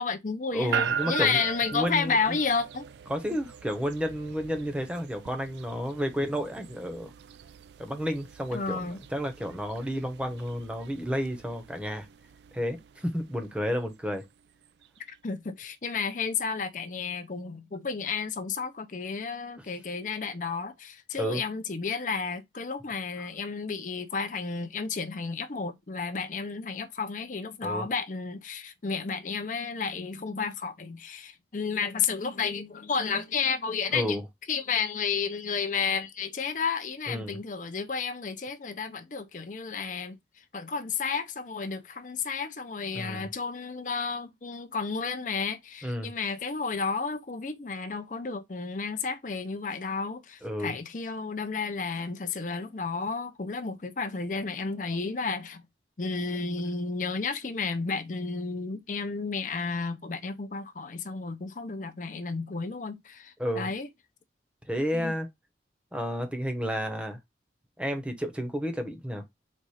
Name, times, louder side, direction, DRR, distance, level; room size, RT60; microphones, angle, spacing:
voice 1, 0.0-2.9 8.5-9.0 15.2-34.2 34.5-40.2 40.5-55.6 56.0-63.9 64.9-65.1, left 5 dB, 45° left, 0.6 m, -32 dB
voice 2, 0.5-1.4 1.7-2.4 3.1-7.1 7.8-12.1 12.5-14.3 21.1-21.4 23.2-23.3 27.6-27.9 33.9-34.2 37.1-37.4 42.9-43.3 45.8-46.1 50.4-50.8 63.4-63.7 64.7-65.3 65.9-67.2 67.8-69.2, equal, 5° right, 0.9 m, -31 dB
sound 1, 0.7-15.0, right 7 dB, 75° right, 0.3 m, -40 dB
4.3 x 2.5 x 4.8 m
head